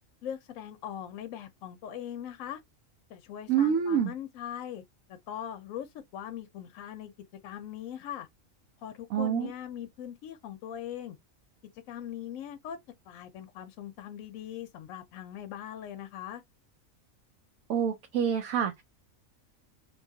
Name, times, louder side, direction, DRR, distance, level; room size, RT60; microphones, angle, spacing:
voice 1, 0.2-2.6 3.1-4.8 5.1-7.1 7.4-8.3 8.8-11.2 11.9-12.8 13.1-16.4, left 10 dB, 75° left, 1.0 m, -40 dB
voice 2, 3.5-4.1 9.1-9.5 17.7-18.8, right 8 dB, 80° right, 1.0 m, -27 dB
2.9 x 2.3 x 2.6 m
omnidirectional pair, 1.4 m